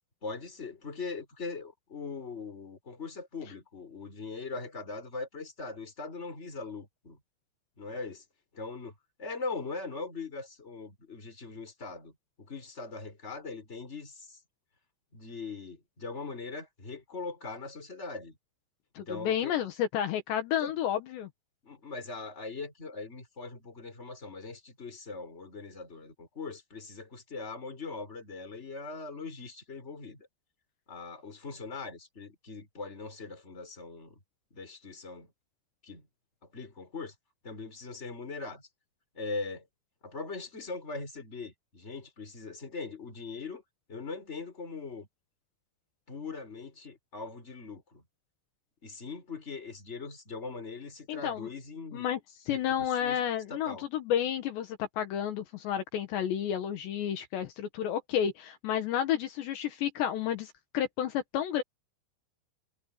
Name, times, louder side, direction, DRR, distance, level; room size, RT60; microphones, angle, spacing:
voice 1, 0.2-7.2 7.8-8.2 8.5-14.4 15.1-18.4 19.0-19.6 20.6-20.7 21.6-30.3 30.9-34.2 34.5-35.3 35.8-36.1 36.5-37.1 37.4-38.7 39.1-39.7 40.0-43.6 43.9-45.1 46.1-48.0 48.8-52.1 52.5-53.2 53.5-53.9, left 4 dB, 15° left, 4.6 m, -41 dB
voice 2, 19.0-21.3 51.1-51.5 51.9-52.2 52.5-61.6, left 10 dB, 70° left, 3.6 m, -31 dB
omnidirectional pair, 5.3 m